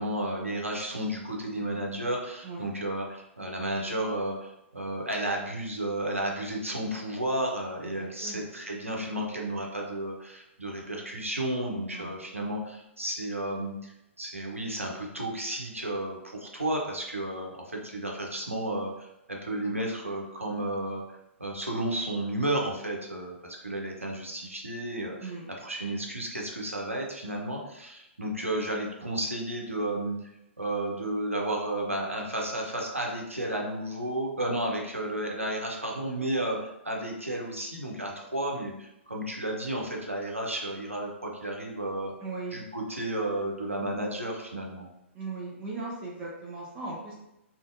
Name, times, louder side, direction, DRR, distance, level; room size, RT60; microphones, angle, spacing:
voice 1, 0.0-21.0 21.4-25.3 25.6-30.3 30.6-42.1 42.5-44.9, right 1 dB, 90° right, -1 dB, 0.6 m, -32 dB
voice 2, 8.0-8.5 11.9-12.2 25.2-25.5 42.2-42.6 45.1-47.1, right 3 dB, 20° right, -5 dB, 0.5 m, -38 dB
2.5 x 2.1 x 2.5 m, 0.89 s
figure-of-eight pair, 115°, 7 cm